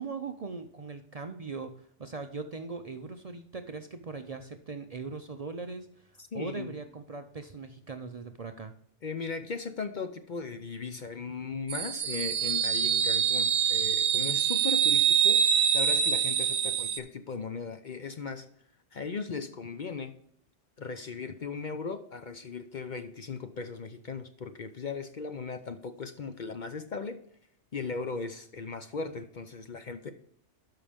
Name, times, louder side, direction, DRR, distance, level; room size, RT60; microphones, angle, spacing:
voice 1, 0.0-1.7 2.0-8.7, right 4 dB, 40° right, 7 dB, 0.6 m, -40 dB
voice 2, 6.3-6.7 9.0-18.5 18.9-20.1 20.8-27.2 27.7-30.1, left 4 dB, 50° left, 9 dB, 0.7 m, -37 dB
sound 1, 11.7-17.0, right 8 dB, 65° right, 0.9 m, -25 dB
12.5 x 5.7 x 3.5 m, 0.66 s
omnidirectional pair, 1.2 m